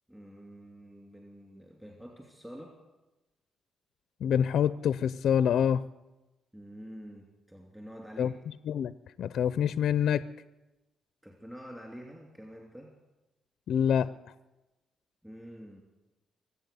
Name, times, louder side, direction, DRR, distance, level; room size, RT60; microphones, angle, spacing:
voice 1, 0.1-2.8 6.5-8.4 11.2-12.9 15.2-15.8, equal, 10° right, -1 dB, 2.8 m, -47 dB
voice 2, 4.2-5.8 8.2-8.3 8.7-8.9 9.2-10.3 13.7-14.1, left 8 dB, 70° left, 15 dB, 0.4 m, -26 dB
24.0 x 8.3 x 6.9 m, 1.0 s
cardioid pair, 90°, 0 cm